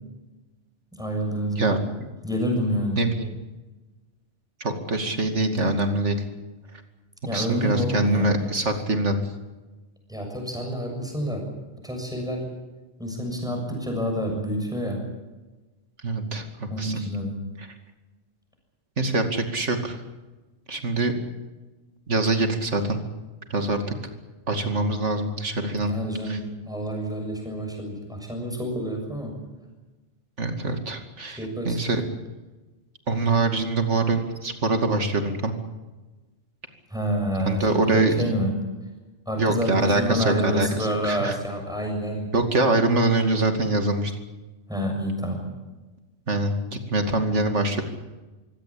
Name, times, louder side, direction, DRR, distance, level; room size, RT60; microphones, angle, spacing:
voice 1, 1.0-1.7 2.2-3.0 7.3-8.3 10.1-11.5 11.8-12.5 13.0-15.0 16.7-17.4 25.9-29.4 31.4-31.8 36.9-38.5 39.3-42.4 44.7-45.5, equal, 5° right, 2 dB, 7.0 m, -28 dB
voice 2, 3.0-3.3 4.6-6.2 7.3-9.2 16.0-17.0 19.0-20.0 20.7-21.1 22.1-23.0 23.5-23.9 24.5-26.0 26.3-26.4 30.4-31.4 31.6-32.0 33.1-35.5 37.5-38.3 39.4-41.4 42.3-44.1 46.3-47.8, right 2 dB, 75° right, 6 dB, 2.8 m, -24 dB
24.5 x 17.0 x 8.7 m, 1.2 s
omnidirectional pair, 1.2 m